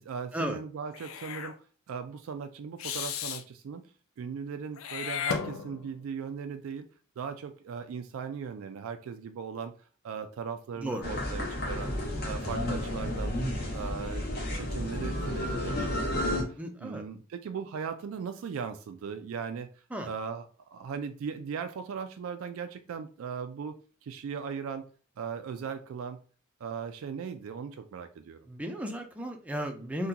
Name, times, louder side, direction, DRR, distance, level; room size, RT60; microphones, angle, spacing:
voice 1, 0.0-3.9 4.2-6.9 7.2-9.7 10.0-11.9 12.2-13.4 13.7-24.9 25.2-26.2 26.6-28.4, right 6 dB, 70° right, 8 dB, 0.3 m, -38 dB
Meow / Hiss, 0.9-1.5 2.8-3.4 4.8-6.0, left 8 dB, 70° left, 0.4 m, -35 dB
sound 1, 11.0-16.4, left 1 dB, 50° left, 1.0 m, -32 dB
voice 2, 16.6-17.0 19.9-20.1 28.5-30.1, equal, 5° right, 4 dB, 0.4 m, -34 dB
3.7 x 2.2 x 2.7 m, 0.39 s
head